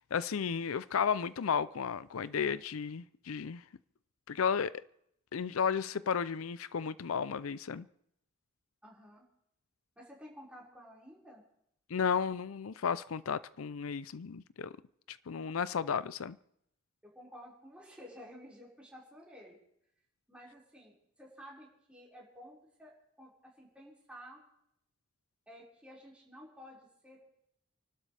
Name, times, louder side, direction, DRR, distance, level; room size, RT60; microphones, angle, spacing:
voice 1, 0.0-3.6 4.3-4.8 5.3-7.9 11.9-14.7 15.1-16.4, left 6 dB, 85° left, 0.5 m, -33 dB
voice 2, 8.8-9.2 10.0-11.4 17.0-19.6 20.3-22.9 23.2-24.4 25.5-27.3, equal, 5° right, 5.1 m, -53 dB
29.5 x 12.0 x 3.4 m
head